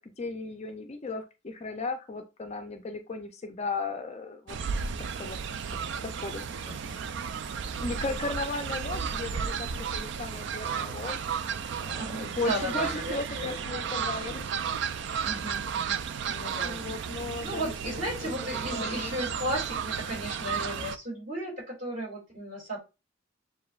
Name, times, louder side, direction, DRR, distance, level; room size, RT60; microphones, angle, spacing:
voice 1, 0.0-4.6 5.2-5.4 6.2-6.7 7.8-11.2 11.8-14.8 16.6-19.1, left 3 dB, 30° left, 0.4 m, -36 dB
Fowl, 4.5-21.0, right 6 dB, 60° right, 0.3 m, -33 dB
voice 2, 6.6-7.3 12.0-13.5 15.2-16.8 17.4-22.8, right 1 dB, 40° right, 2.3 m, -35 dB
6.9 x 2.6 x 2.3 m
head